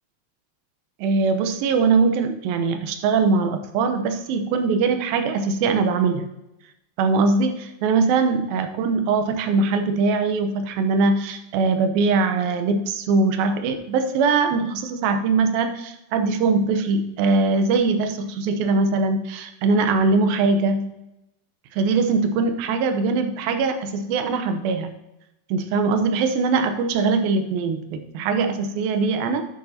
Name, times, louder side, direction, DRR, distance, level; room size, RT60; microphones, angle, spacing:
voice 1, 1.0-6.3 7.0-20.8 21.7-24.9 25.5-29.5, right 4 dB, 80° right, 7 dB, 2.7 m, -21 dB
11.5 x 9.2 x 2.8 m, 0.89 s
omnidirectional pair, 4.1 m